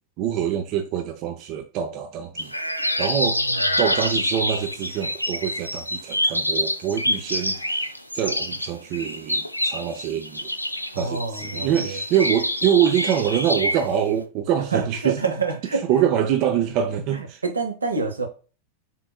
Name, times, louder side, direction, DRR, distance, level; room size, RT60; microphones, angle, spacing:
voice 1, 0.2-2.5 3.0-3.4 3.8-10.5 10.9-15.2 15.8-17.4, right 9 dB, 40° right, 0.5 m, -25 dB
sound 1, 2.4-13.9, left 1 dB, 90° left, 0.4 m, -26 dB
voice 2, 10.9-12.0 14.7-15.8 17.1-18.3, right 4 dB, 75° right, 0.8 m, -27 dB
4.2 x 3.7 x 2.3 m
figure-of-eight pair, 90°, 0 cm